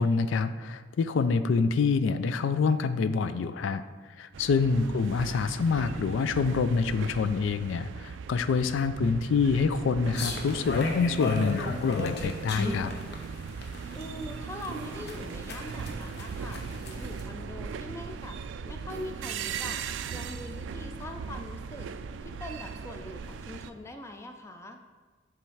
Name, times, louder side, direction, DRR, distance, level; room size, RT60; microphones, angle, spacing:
voice 1, 0.0-3.8 4.2-12.9, left 5 dB, 90° left, 12 dB, 0.4 m, -26 dB
sound 1, 4.3-23.7, right 6 dB, 80° right, 0.3 m, -39 dB
sound 2, 10.1-17.2, left 2 dB, 60° left, 0.8 m, -34 dB
voice 2, 13.9-18.4 18.7-19.8 20.1-21.9 22.2-24.8, left 1 dB, 15° left, 5 dB, 0.3 m, -42 dB
7.0 x 3.4 x 4.7 m, 1.4 s
head